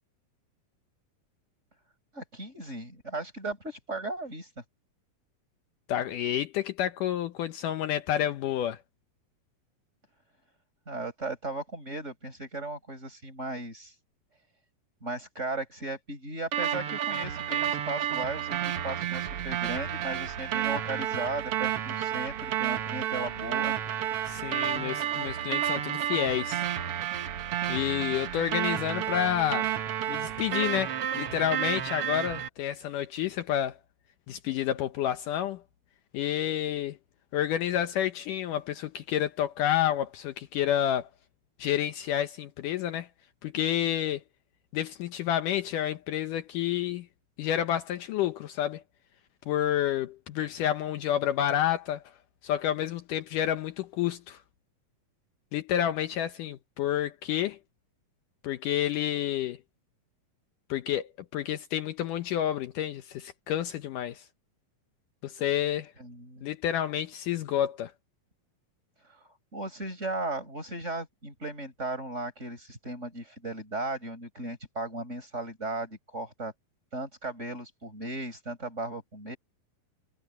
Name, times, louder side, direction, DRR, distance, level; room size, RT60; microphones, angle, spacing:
voice 1, 2.1-4.5 10.9-13.9 15.0-23.8 66.0-66.4 69.5-76.5 76.9-79.4, right 2 dB, 20° right, 5.9 m, -36 dB
voice 2, 5.9-8.8 24.3-26.7 27.7-29.7 30.1-33.8 34.3-35.6 36.1-37.0 37.3-41.1 41.6-43.1 43.4-44.2 44.7-47.1 47.4-48.8 49.5-52.0 52.4-54.4 55.5-57.6 58.4-59.6 60.7-64.2 65.2-65.9 66.4-67.9, left 11 dB, 75° left, 2.4 m, -29 dB
sound 1, 16.5-32.5, right 10 dB, 60° right, 1.6 m, -31 dB
omnidirectional pair, 4.0 m